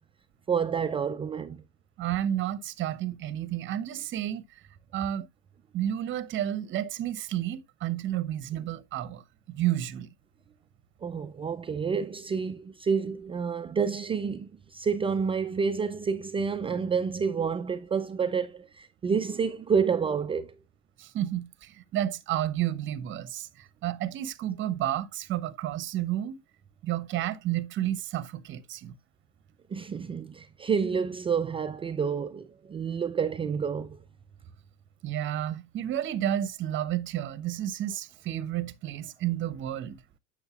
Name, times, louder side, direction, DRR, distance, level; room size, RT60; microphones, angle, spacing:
voice 1, 0.5-1.6 11.0-20.5 29.7-34.0, right 6 dB, 15° right, 0.4 m, -29 dB
voice 2, 2.0-4.4 4.9-5.3 5.7-10.1 21.0-23.5 23.8-26.4 26.8-28.9 35.0-40.0, right 12 dB, 35° right, 0.8 m, -31 dB
8.0 x 6.4 x 2.3 m
hypercardioid pair, 95°, 34 cm